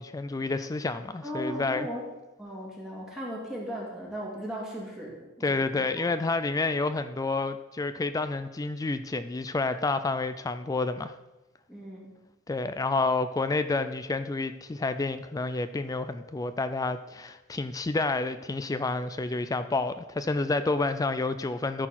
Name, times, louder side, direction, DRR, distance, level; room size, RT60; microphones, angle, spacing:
voice 1, 0.0-1.9 5.4-11.1 12.5-21.9, left 3 dB, 15° left, 11 dB, 0.3 m, -29 dB
voice 2, 1.2-2.0 2.4-5.6 6.0-6.1 11.7-12.1, equal, ahead, -4 dB, 2.3 m, -37 dB
13.5 x 4.5 x 5.8 m, 1.1 s
head